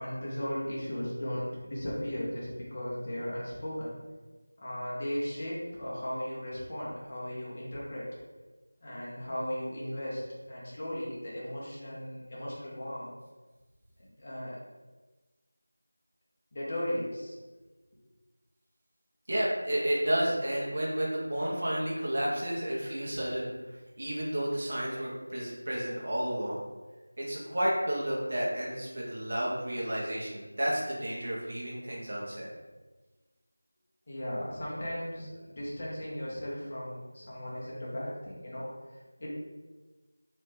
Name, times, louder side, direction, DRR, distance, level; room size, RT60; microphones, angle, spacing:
voice 1, 0.0-4.0 4.6-8.1 8.8-10.2 10.5-13.1 14.0-14.6 16.5-17.4 34.1-39.3, equal, 30° left, -6 dB, 1.0 m, -36 dB
voice 2, 19.3-26.6 27.2-32.5, right 1 dB, 45° right, -4 dB, 1.2 m, -31 dB
3.8 x 3.2 x 3.4 m, 1.2 s
figure-of-eight pair, 175°, 0 cm